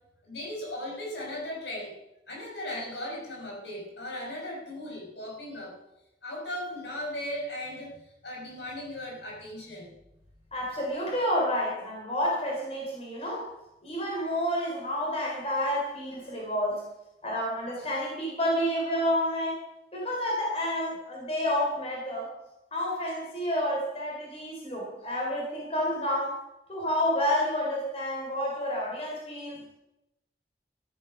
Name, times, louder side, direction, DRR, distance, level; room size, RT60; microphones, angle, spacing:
voice 1, 0.2-1.9 2.3-5.8 6.2-9.9 29.6-29.7, left 1 dB, 80° left, -2 dB, 5.9 m, -37 dB
voice 2, 10.5-13.5 13.8-16.8 17.2-19.6 19.9-22.3 22.7-26.4 26.7-29.6, equal, 35° left, -1 dB, 3.8 m, -29 dB
13.5 x 13.5 x 5.4 m, 0.91 s
head